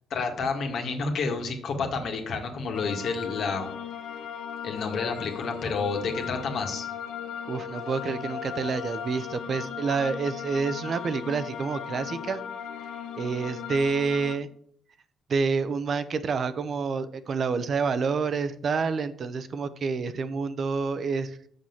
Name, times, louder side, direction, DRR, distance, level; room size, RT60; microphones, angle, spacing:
voice 1, 0.1-3.7 4.6-6.9, left 4 dB, 65° left, 4 dB, 1.9 m, -30 dB
sound 1, 2.7-14.3, left 8 dB, 85° left, 1.2 m, -37 dB
voice 2, 7.4-12.5 13.2-14.5 15.3-21.4, right 5 dB, 50° right, 12 dB, 0.8 m, -28 dB
6.5 x 6.1 x 7.2 m, 0.63 s
cardioid pair, 90°, 0 cm